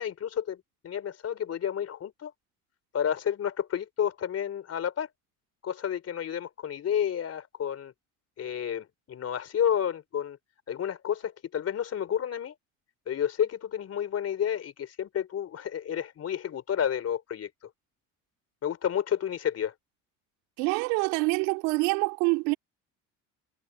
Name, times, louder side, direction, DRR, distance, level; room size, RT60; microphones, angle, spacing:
voice 1, 0.0-2.3 2.9-5.1 5.6-7.9 8.4-10.4 10.7-12.5 13.1-17.5 18.6-19.7, left 9 dB, 45° left, 3.7 m, -30 dB
voice 2, 20.6-22.6, right 29 dB, 90° right, 3.5 m, -26 dB
supercardioid pair, 90°, 34 cm